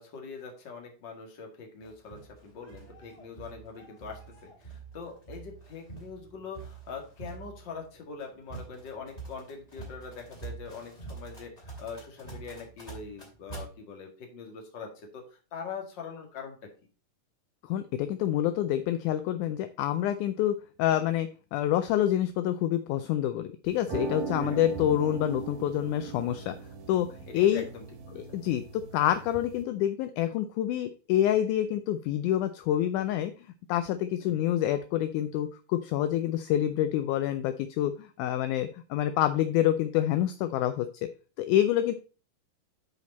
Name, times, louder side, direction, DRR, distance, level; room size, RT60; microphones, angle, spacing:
voice 1, 0.0-16.6 24.4-24.7 27.3-28.4 34.2-34.5, left 5 dB, 40° left, 1 dB, 2.1 m, -43 dB
sound 1, 1.8-13.7, right 4 dB, 15° left, 2.1 m, -46 dB
voice 2, 17.6-26.6 26.9-27.1 27.3-27.6 28.2-33.3 33.7-41.1 41.4-41.9, left 12 dB, 80° left, 10 dB, 1.8 m, -27 dB
sound 2, 23.6-29.6, right 6 dB, 80° right, 3.1 m, -39 dB
9.2 x 5.2 x 4.1 m, 0.36 s
omnidirectional pair, 4.0 m